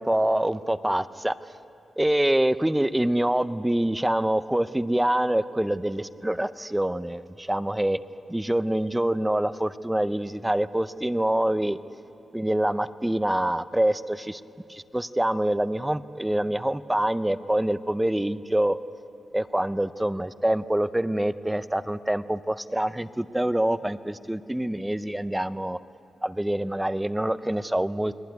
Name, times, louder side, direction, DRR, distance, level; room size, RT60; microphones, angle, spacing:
voice 1, 0.0-1.5 2.0-8.0 8.3-11.8 12.3-14.4 14.7-18.8 19.3-25.8 26.2-28.1, right 1 dB, 5° right, 13 dB, 0.6 m, -25 dB
29.5 x 21.0 x 9.4 m, 2.6 s
wide cardioid pair, 155°, 0 cm